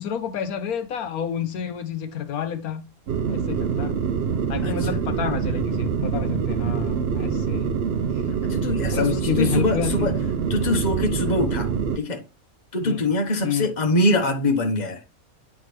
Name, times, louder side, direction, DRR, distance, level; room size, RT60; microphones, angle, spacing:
voice 1, 0.0-2.9 3.3-3.9 4.5-7.7 8.9-10.1 12.8-13.0 13.4-13.7, left 8 dB, 80° left, 1.3 m, -29 dB
sound 1, 3.1-12.0, right 6 dB, 55° right, 0.7 m, -25 dB
voice 2, 8.5-10.2 10.5-11.7 12.0-12.3 12.7-15.0, left 1 dB, 30° left, 1.2 m, -23 dB
9.5 x 3.8 x 3.2 m
omnidirectional pair, 1.5 m